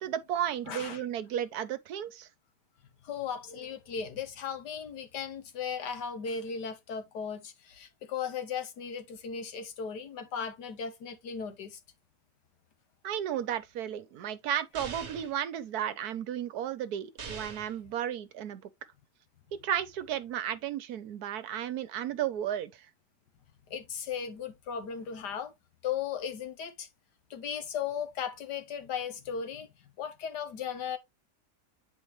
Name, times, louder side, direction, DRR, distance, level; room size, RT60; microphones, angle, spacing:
voice 1, 0.0-2.3 13.0-18.7 19.5-22.9, right 10 dB, 70° right, 1.1 m, -34 dB
voice 2, 0.7-1.0 3.0-11.8 23.7-25.5 25.8-26.9 27.3-31.0, left 7 dB, 75° left, 1.7 m, -36 dB
sound 1, 14.7-15.4 17.2-17.8, right 5 dB, 45° right, 1.2 m, -42 dB
8.6 x 4.5 x 3.1 m
omnidirectional pair, 1.8 m